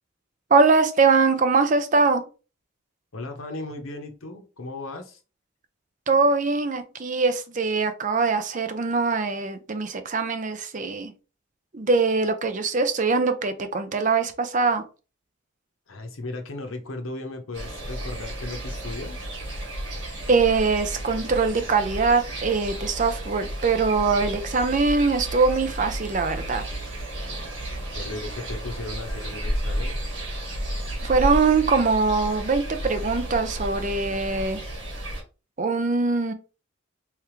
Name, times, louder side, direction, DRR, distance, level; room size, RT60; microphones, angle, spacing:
voice 1, 0.5-2.2 6.1-11.1 11.7-14.8 20.3-26.6 31.0-34.6 35.6-36.3, right 4 dB, 40° right, 0.5 m, -22 dB
voice 2, 3.1-5.2 15.9-19.3 27.9-30.0, left 2 dB, 90° left, 0.8 m, -36 dB
sound 1, 17.5-35.2, right 1 dB, 60° right, 1.7 m, -32 dB
3.5 x 3.3 x 3.1 m
head